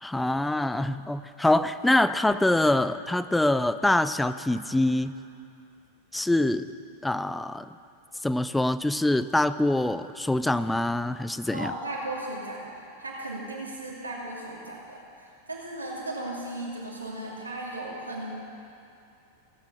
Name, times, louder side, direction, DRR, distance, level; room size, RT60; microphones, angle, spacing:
voice 1, 0.0-5.1 6.1-6.7 7.0-7.7 8.2-11.7, left 1 dB, 5° left, 13 dB, 0.4 m, -24 dB
voice 2, 11.5-18.3, right 1 dB, 80° right, -4 dB, 2.6 m, -36 dB
16.5 x 8.7 x 5.7 m, 2.6 s
figure-of-eight pair, 90°, 0 cm